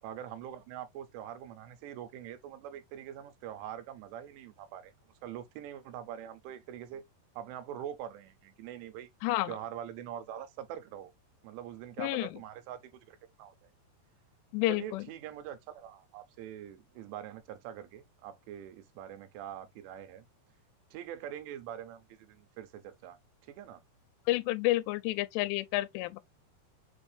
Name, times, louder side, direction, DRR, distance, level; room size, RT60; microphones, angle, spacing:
voice 1, 0.0-4.9 5.2-7.1 7.4-9.1 9.5-11.1 11.4-13.7 14.7-20.2 20.9-23.8, right 10 dB, 90° right, 3.0 m, -44 dB
voice 2, 9.2-9.5 12.0-12.3 14.5-15.0 24.3-26.2, left 17 dB, 85° left, 2.7 m, -30 dB
6.3 x 2.6 x 3.2 m
omnidirectional pair, 4.9 m